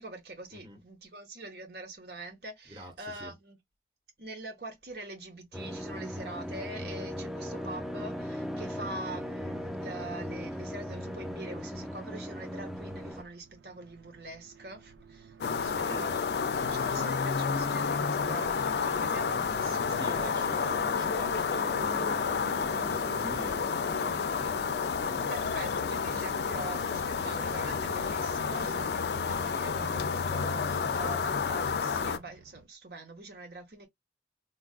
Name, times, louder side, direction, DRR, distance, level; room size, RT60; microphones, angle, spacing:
voice 1, 0.0-3.6 4.2-15.4 15.6-16.3 16.7-20.5 25.3-33.9, right 2 dB, 60° right, 1.1 m, -44 dB
voice 2, 2.7-3.3 15.4-16.2 19.9-24.6 25.1-25.4 31.0-31.1, right 1 dB, 25° right, 1.0 m, -45 dB
sound 1, 5.5-13.2, equal, ahead, 0.4 m, -38 dB
sound 2, 12.8-32.6, right 3 dB, 90° right, 0.6 m, -49 dB
sound 3, 15.4-32.2, left 6 dB, 65° left, 0.4 m, -30 dB
3.9 x 2.4 x 2.3 m
head